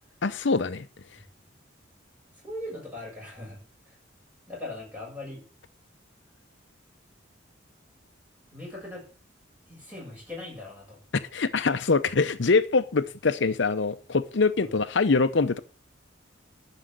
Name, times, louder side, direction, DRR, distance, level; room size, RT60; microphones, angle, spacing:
voice 1, 0.2-0.9 11.1-15.6, left 4 dB, 65° left, 11 dB, 0.7 m, -24 dB
voice 2, 2.4-3.6 3.9-4.0 4.5-5.4 8.5-9.1 9.7-11.0 14.6-14.8, left 1 dB, 10° right, -3 dB, 7.7 m, -39 dB
11.5 x 6.3 x 9.0 m, 0.38 s
head